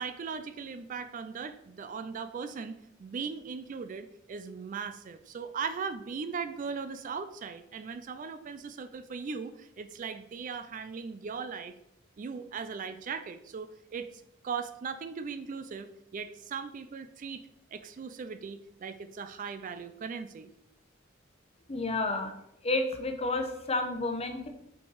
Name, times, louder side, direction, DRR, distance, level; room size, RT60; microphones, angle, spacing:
voice 1, 0.0-11.7 12.2-20.5, right 5 dB, 40° right, 11 dB, 0.3 m, -39 dB
voice 2, 21.7-22.3 22.6-24.5, left 2 dB, 30° left, 4 dB, 0.9 m, -30 dB
5.6 x 4.4 x 4.7 m, 0.79 s
head